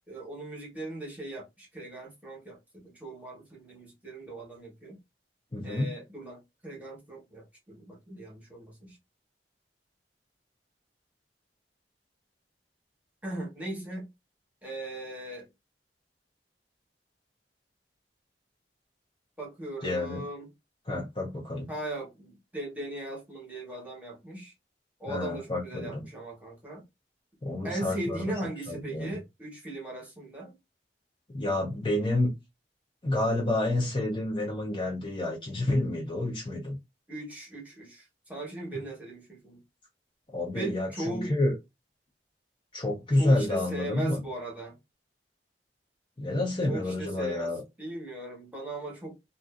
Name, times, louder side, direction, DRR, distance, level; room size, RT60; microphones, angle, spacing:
voice 1, 0.1-5.0 5.6-9.0 13.2-14.1 14.6-15.5 19.4-20.5 21.7-24.5 25.0-26.8 27.6-30.5 37.1-39.6 40.5-41.4 43.2-44.8 46.7-47.5 47.8-49.2, right 1 dB, 10° right, 1.0 m, -38 dB
voice 2, 5.5-5.9 19.8-20.2 20.9-21.7 25.1-26.0 27.4-28.3 28.7-29.2 31.3-32.4 33.0-36.8 40.3-41.6 42.7-44.2 46.2-47.6, left 1 dB, 30° left, 0.6 m, -29 dB
2.5 x 2.4 x 2.4 m
head